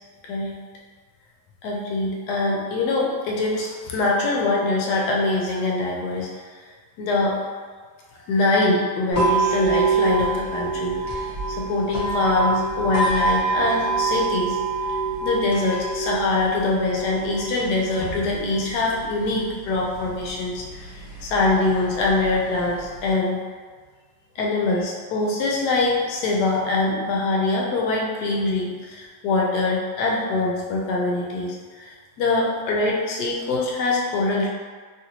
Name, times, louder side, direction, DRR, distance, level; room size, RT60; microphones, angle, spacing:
voice 1, 0.2-0.6 1.6-6.3 6.5-6.6 7.0-7.4 8.3-23.4 24.4-34.5, left 2 dB, 70° left, -2 dB, 1.1 m, -23 dB
sound 1, 9.1-23.1, right 4 dB, 50° left, 0.5 m, -27 dB
3.2 x 2.5 x 2.9 m, 1.5 s
omnidirectional pair, 2.0 m